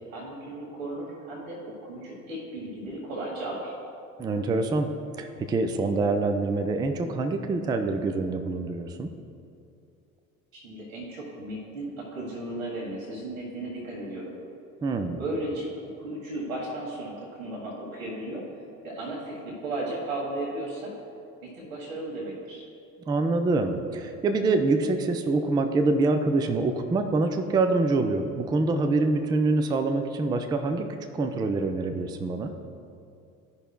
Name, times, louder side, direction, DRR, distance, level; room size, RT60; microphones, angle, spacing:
voice 1, 0.1-3.8 10.5-14.3 15.2-15.7 16.0-18.4 18.8-20.9 21.4-22.6, right 1 dB, 70° right, -4 dB, 1.5 m, -35 dB
voice 2, 4.2-4.9 5.2-9.1 14.8-15.2 23.1-30.9 31.1-32.5, right 3 dB, 10° right, 6 dB, 0.3 m, -25 dB
13.0 x 5.4 x 2.2 m, 2.5 s
figure-of-eight pair, 60°, 41 cm